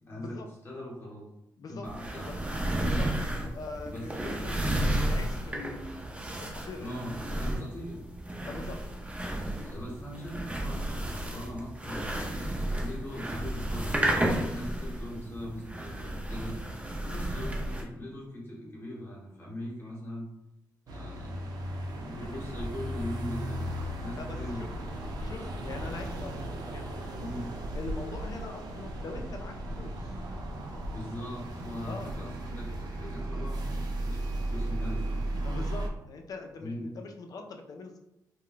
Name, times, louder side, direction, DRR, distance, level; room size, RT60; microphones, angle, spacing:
voice 1, 0.0-1.3 1.7-2.4 3.9-4.3 6.8-8.1 9.4-10.8 11.1-16.6 17.1-20.3 20.9-21.5 21.9-24.6 27.1-27.5 30.9-35.2 36.6-36.9, left 1 dB, 35° left, -4 dB, 0.9 m, -41 dB
sound 1, 1.8-17.8, right 1 dB, 20° right, 0.6 m, -32 dB
voice 2, 2.8-3.1 3.4-6.8 8.4-8.8 17.0-17.3 22.3-22.4 24.1-24.7 25.2-26.4 26.7-26.8 27.7-30.2 31.9-32.2 35.4-38.0, left 3 dB, 60° left, 4 dB, 0.4 m, -42 dB
sound 2, 20.9-35.9, right 1 dB, 70° right, 0.5 m, -35 dB
2.2 x 2.2 x 3.8 m, 0.88 s
cardioid pair, 85°, 7 cm